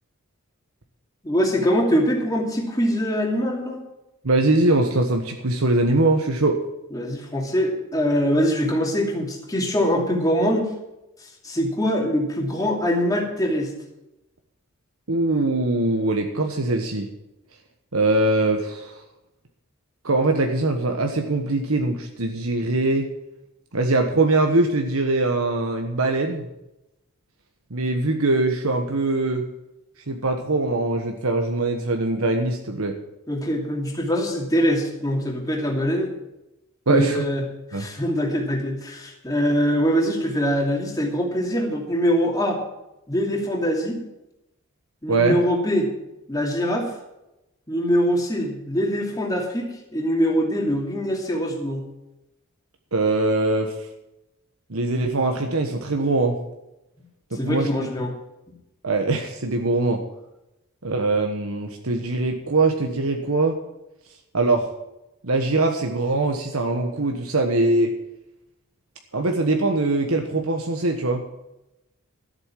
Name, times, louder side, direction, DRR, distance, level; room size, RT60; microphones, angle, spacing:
voice 1, 1.2-3.8 6.9-10.7 11.4-13.7 33.3-36.1 36.9-37.4 37.7-42.6 43.1-44.0 45.0-45.9 46.3-46.9 47.7-51.8 57.3-58.1, equal, 15° left, 0 dB, 2.6 m, -23 dB
voice 2, 4.2-6.6 15.1-17.1 17.9-19.0 20.0-23.1 23.7-26.5 27.7-29.4 30.1-32.9 36.9-37.2 37.7-37.9 45.1-45.4 52.9-53.7 54.7-56.4 57.3-57.7 58.8-60.0 60.8-63.6 64.3-64.7 65.2-67.9 69.1-71.2, right 2 dB, 80° right, 3 dB, 1.3 m, -22 dB
13.0 x 8.1 x 7.5 m, 0.91 s
head